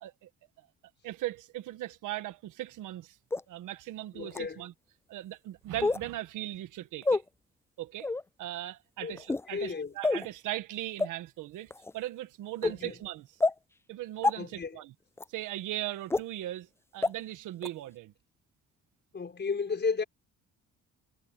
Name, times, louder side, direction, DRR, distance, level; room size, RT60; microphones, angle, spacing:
voice 1, 1.0-3.2 3.5-4.7 5.1-7.2 7.8-8.1 8.4-13.3 13.9-14.9 15.3-18.1, right 15 dB, 90° right, 1.6 m, -38 dB
sound 1, 3.3-3.4 4.3-4.4 5.8-6.0 7.0-7.2 8.0-8.2 9.2-9.5 10.0-10.3 11.0-11.1 11.7-11.9 12.6-12.7 13.4-13.5 14.2-14.3 15.2-15.3 16.1-16.2 17.0-17.1 17.6-17.7, left 3 dB, 10° left, 0.3 m, -27 dB
voice 2, 4.1-4.6 9.0-9.2 9.5-9.9 12.6-12.9 14.3-14.8 19.1-20.0, left 5 dB, 35° left, 5.4 m, -33 dB
cardioid pair, 90°, 30 cm